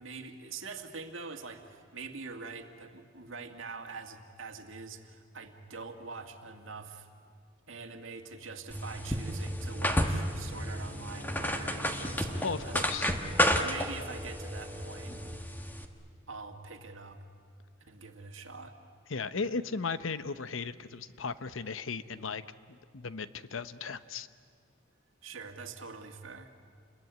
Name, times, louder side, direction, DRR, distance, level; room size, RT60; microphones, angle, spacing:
voice 1, 0.0-7.1 7.7-12.8 13.6-15.1 16.3-17.2 17.9-18.8 25.2-26.5, right 4 dB, 70° right, 5 dB, 2.1 m, -44 dB
Bowed string instrument, 8.6-12.7, equal, 35° left, 1.2 m, -48 dB
sound 1, 8.7-15.9, equal, 10° left, 1.4 m, -32 dB
sound 2, 9.3-15.4, right 1 dB, 25° right, 1.2 m, -50 dB
voice 2, 12.4-13.1 19.1-22.4 22.7-24.3, left 4 dB, 70° left, 13 dB, 0.9 m, -36 dB
29.0 x 21.5 x 9.4 m, 2.1 s
head